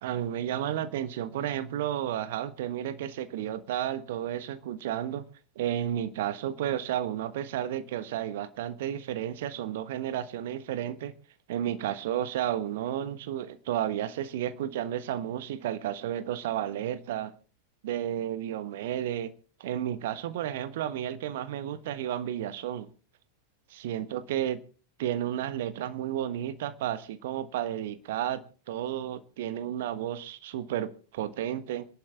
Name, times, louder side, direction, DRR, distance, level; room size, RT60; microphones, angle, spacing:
voice 1, 0.0-5.2 5.5-11.1 11.5-17.3 17.8-19.3 19.6-22.9 23.7-24.6 25.0-31.9, right 11 dB, 55° right, 1.2 m, -32 dB
27.0 x 11.0 x 3.5 m
figure-of-eight pair, 90°, 0 cm